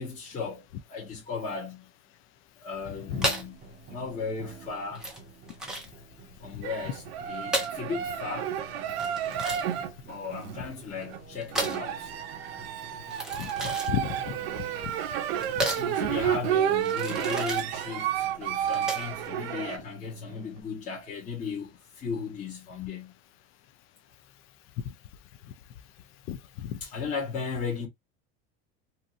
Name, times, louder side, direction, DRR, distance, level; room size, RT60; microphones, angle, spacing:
voice 1, 0.0-1.9 2.6-3.6 3.9-5.0 6.4-8.5 10.1-12.1 15.6-23.1 26.8-27.9, left 5 dB, 25° left, 1.0 m, -36 dB
sound 1, 2.8-20.6, right 2 dB, 30° right, 0.8 m, -50 dB
sound 2, 3.2-19.3, right 1 dB, ahead, 0.9 m, -35 dB
sound 3, 6.6-11.2 11.5-19.8, right 10 dB, 90° right, 0.6 m, -31 dB
voice 2, 13.4-14.4 14.8-14.9 15.6-15.7 26.3-26.8, left 9 dB, 45° left, 0.4 m, -33 dB
2.8 x 2.6 x 2.4 m
supercardioid pair, 130°, 30 cm